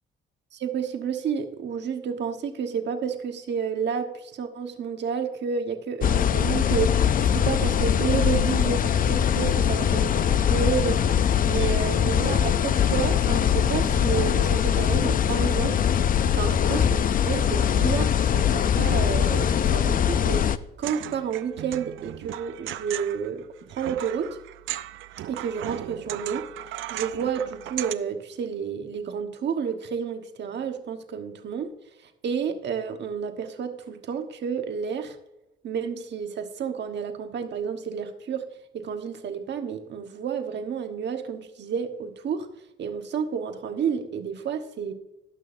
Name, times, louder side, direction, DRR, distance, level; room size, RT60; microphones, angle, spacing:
voice 1, 0.5-11.0 11.5-15.8 16.3-20.4 20.8-23.4 23.7-24.4 25.3-26.5 26.9-31.7 32.2-35.2 35.6-38.5 38.7-42.5 42.8-44.9, right 7 dB, 60° right, 6 dB, 1.3 m, -30 dB
sound 1, 6.0-20.6, left 9 dB, 45° left, 0.5 m, -22 dB
sound 2, 20.8-28.0, right 13 dB, 80° right, 0.5 m, -37 dB
18.5 x 6.2 x 2.6 m, 0.93 s
cardioid pair, 90°, 20 cm